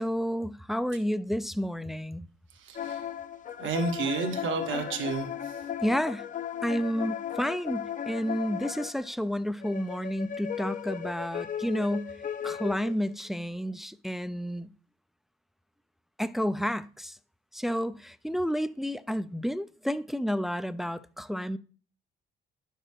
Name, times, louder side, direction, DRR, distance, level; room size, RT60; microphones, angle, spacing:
voice 1, 0.0-2.3 5.8-6.3 6.6-12.1 12.4-14.7 16.2-17.2 17.5-21.6, equal, ahead, 0.3 m, -30 dB
voice 2, 2.5-3.1 3.6-5.6, right 4 dB, 75° right, 1.4 m, -31 dB
sound 1, 2.7-9.1 9.6-13.1, left 9 dB, 40° left, 0.6 m, -36 dB
9.7 x 6.6 x 3.2 m
cardioid pair, 90°, 20 cm